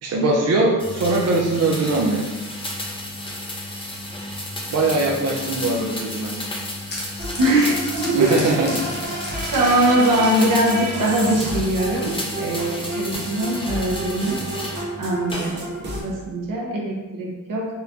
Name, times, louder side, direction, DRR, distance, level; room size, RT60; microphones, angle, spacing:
voice 1, 0.0-2.3 4.7-6.3 8.1-8.9 9.3-9.4, right 2 dB, 55° right, -2 dB, 0.5 m, -21 dB
sound 1, 0.8-14.8 15.3-15.9, left 1 dB, 15° left, 0.6 m, -32 dB
sound 2, 6.6-11.7, left 1 dB, 30° left, 1.1 m, -36 dB
sound 3, 7.2-16.0, right 2 dB, 35° right, 1.1 m, -31 dB
voice 2, 7.4-8.3 9.5-14.4 15.0-17.7, right 1 dB, 85° right, -2 dB, 1.0 m, -22 dB
4.2 x 2.6 x 3.5 m, 1.2 s
wide cardioid pair, 130°, 32 cm